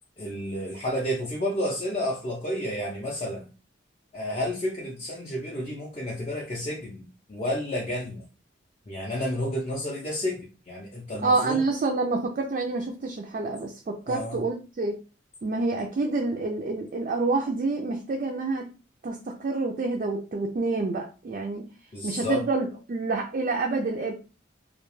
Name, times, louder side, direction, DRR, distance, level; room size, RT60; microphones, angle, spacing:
voice 1, 0.2-3.5 4.1-8.2 8.9-11.6 14.1-14.4 21.9-22.4, left 1 dB, 30° left, 0.4 m, -31 dB
voice 2, 11.2-15.0 15.4-18.7 19.0-21.6 22.0-24.1, right 3 dB, 40° right, 0.3 m, -28 dB
2.3 x 2.2 x 3.0 m
head